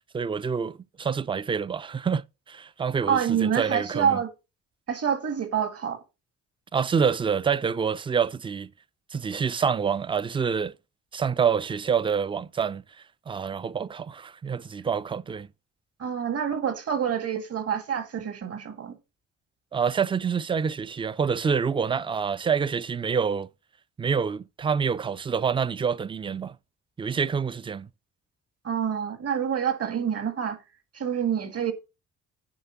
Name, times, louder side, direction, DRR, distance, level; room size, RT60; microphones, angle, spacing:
voice 1, 0.1-4.2 6.7-8.7 9.1-10.7 11.1-12.8 13.3-15.5 19.7-23.5 24.0-26.6 27.0-27.9, right 6 dB, 20° right, 0.4 m, -27 dB
voice 2, 3.1-4.3 4.9-6.0 16.0-18.9 28.6-30.6 30.9-31.7, right 8 dB, 55° right, 1.8 m, -27 dB
9.0 x 3.6 x 5.7 m
cardioid pair, 90°, 30 cm